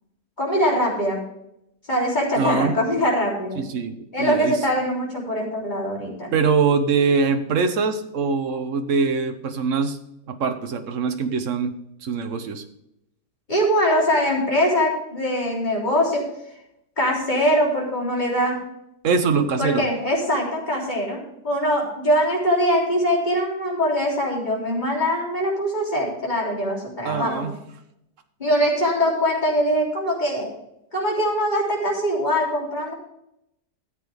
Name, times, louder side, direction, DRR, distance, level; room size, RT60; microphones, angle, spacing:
voice 1, 0.4-1.2 1.9-3.6 4.1-6.3 13.5-16.2 17.0-18.6 19.6-27.5 28.4-30.5 30.9-32.9, equal, 25° left, -3 dB, 3.6 m, -22 dB
voice 2, 2.4-2.8 3.6-4.6 6.3-10.0 10.3-11.7 12.0-12.6 19.0-19.8 27.0-27.5, right 5 dB, 50° right, 8 dB, 1.3 m, -23 dB
14.0 x 8.2 x 3.5 m, 0.81 s
omnidirectional pair, 1.8 m